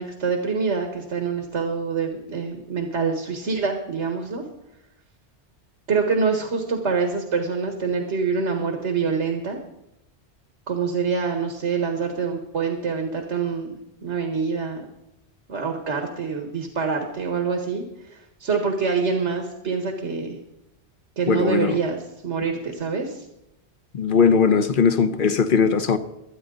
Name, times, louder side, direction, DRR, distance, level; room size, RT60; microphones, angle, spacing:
voice 1, 0.0-4.4 5.9-9.6 10.7-13.7 14.0-14.8 15.5-17.8 18.1-20.4 21.2-23.3, right 5 dB, 80° right, 1.9 m, -25 dB
voice 2, 21.3-21.8 23.9-26.0, left 6 dB, 50° left, 1.1 m, -19 dB
23.0 x 9.3 x 3.9 m
omnidirectional pair, 1.2 m